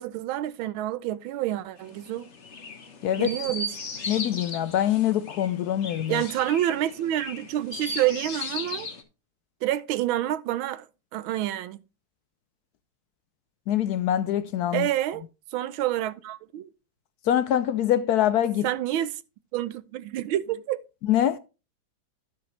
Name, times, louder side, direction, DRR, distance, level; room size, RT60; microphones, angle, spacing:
voice 1, 0.0-2.3 3.2-3.7 6.1-8.9 9.6-10.9 11.1-11.8 14.7-15.2 15.5-16.7 18.6-19.2 19.5-20.8, right 13 dB, 80° right, 1.5 m, -28 dB
Chirp tweet, 1.8-9.0, left 3 dB, 40° left, 1.3 m, -37 dB
voice 2, 4.1-6.2 13.7-14.9 17.3-18.7 21.1-21.4, left 11 dB, 75° left, 0.9 m, -24 dB
12.5 x 6.1 x 3.2 m
omnidirectional pair, 2.2 m